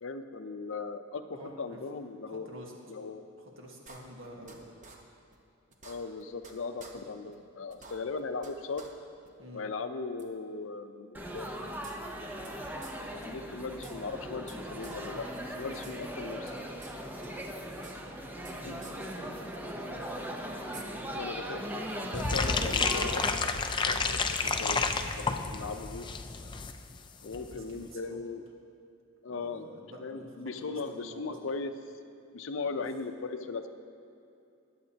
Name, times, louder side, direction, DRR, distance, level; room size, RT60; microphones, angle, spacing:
voice 1, 0.0-2.5 2.9-3.2 5.8-8.9 9.5-12.2 13.1-16.6 18.6-18.8 21.1-21.6 21.9-23.5 23.8-24.8 25.2-26.1 27.2-28.4 29.2-29.7 30.0-31.7 32.3-33.7, left 4 dB, 70° left, 8 dB, 0.6 m, -38 dB
voice 2, 1.3-1.8 2.3-2.7 3.4-4.6 9.4-9.7 14.8-14.9 15.5-16.0 18.5-21.2 24.5-24.9 27.2-28.2 29.3-31.4 32.7-32.8, equal, 75° right, -1 dB, 1.6 m, -49 dB
sound 1, 3.9-4.6 4.8-5.0 5.3-5.4 5.7-6.5 6.8-6.9 7.3-7.4 7.7-8.5 8.8-8.9 9.2-9.3 10.2-10.3 11.3-12.5 12.8-13.0 13.2-13.3 13.6-14.6 14.8-15.0 15.3-16.0 16.2-17.0 17.2-18.5 18.8-18.9 20.1-20.2 20.7-20.8, right 4 dB, 40° right, 1.0 m, -50 dB
Laughter / Chatter / Crowd, 11.1-23.3, equal, 10° right, 0.7 m, -39 dB
sound 2, 22.1-26.7 27.0-27.1 27.3-27.6 27.8-27.9, left 4 dB, 25° left, 0.4 m, -30 dB
20.5 x 8.1 x 2.8 m, 2.6 s
head